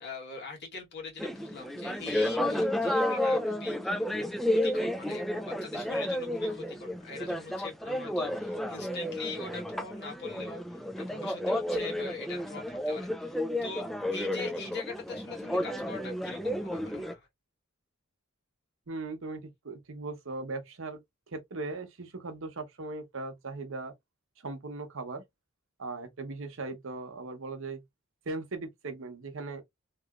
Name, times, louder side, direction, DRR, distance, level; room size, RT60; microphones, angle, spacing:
voice 1, 0.0-17.3, left 4 dB, 55° left, 1.5 m, -42 dB
sound 1, 1.2-17.1, left 1 dB, ahead, 0.4 m, -31 dB
voice 2, 18.9-21.0 21.3-23.9 24.4-25.2 25.8-27.8 28.2-29.6, right 3 dB, 65° right, 0.9 m, -38 dB
3.1 x 2.9 x 2.4 m
head